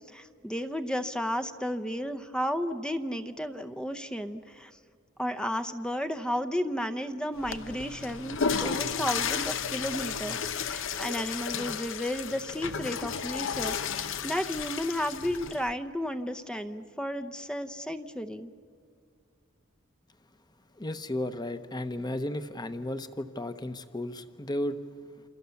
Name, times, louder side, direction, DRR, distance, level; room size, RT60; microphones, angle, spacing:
voice 1, 0.1-4.7 5.2-18.5, equal, 5° left, 9 dB, 0.7 m, -33 dB
Water / Toilet flush, 7.4-15.7, left 6 dB, 70° left, 0.9 m, -33 dB
voice 2, 20.8-24.8, left 1 dB, 20° left, 10 dB, 1.0 m, -34 dB
28.5 x 27.0 x 7.1 m, 2.3 s
head